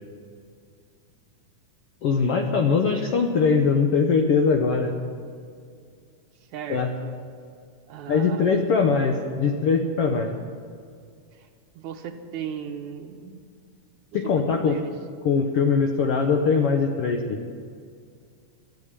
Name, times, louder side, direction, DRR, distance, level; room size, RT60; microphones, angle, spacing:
voice 1, 2.0-4.9 6.7-6.9 8.1-10.3 14.1-14.9 15.2-17.4, left 5 dB, 80° left, 4 dB, 1.3 m, -21 dB
voice 2, 6.5-7.1 7.9-8.6 11.3-11.5 11.7-13.5 14.1-14.9, right 8 dB, 70° right, 5 dB, 2.2 m, -37 dB
13.0 x 9.9 x 9.6 m, 2.2 s
omnidirectional pair, 3.8 m